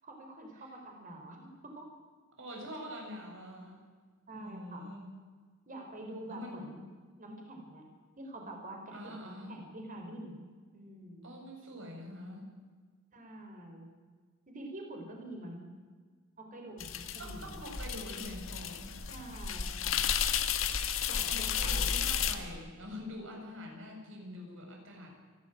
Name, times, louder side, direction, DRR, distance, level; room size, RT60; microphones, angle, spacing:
voice 1, 0.0-1.9 4.3-4.9 5.7-6.8 7.2-7.8 8.2-10.4 10.7-11.4 13.1-13.9 14.5-15.6 16.4-17.6 19.1-20.0 21.0-22.3, right 1 dB, 40° right, 2 dB, 4.4 m, -46 dB
voice 2, 2.4-3.8 4.3-5.1 6.3-6.7 8.9-9.5 11.2-12.5 17.2-19.4 21.3-25.2, left 1 dB, 70° right, 0 dB, 7.1 m, -45 dB
sound 1, 16.8-22.4, left 8 dB, 80° left, 1.6 m, -33 dB
28.0 x 12.0 x 9.3 m, 1.5 s
head